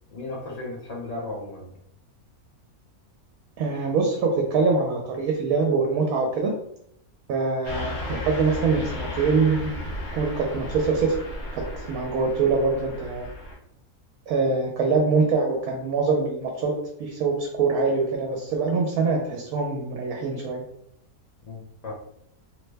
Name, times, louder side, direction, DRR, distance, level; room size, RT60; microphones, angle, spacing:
voice 1, 0.1-1.7 21.4-21.9, left 2 dB, 90° left, -2 dB, 0.3 m, -35 dB
voice 2, 3.6-6.5 7.3-9.7 10.1-11.1 11.5-13.3 14.3-16.7 17.0-20.6, right 4 dB, 75° right, 1 dB, 1.0 m, -24 dB
Car passing by / Truck, 7.6-13.5, left 2 dB, 75° left, 1.3 m, -34 dB
3.1 x 2.1 x 3.2 m, 0.72 s
omnidirectional pair, 1.6 m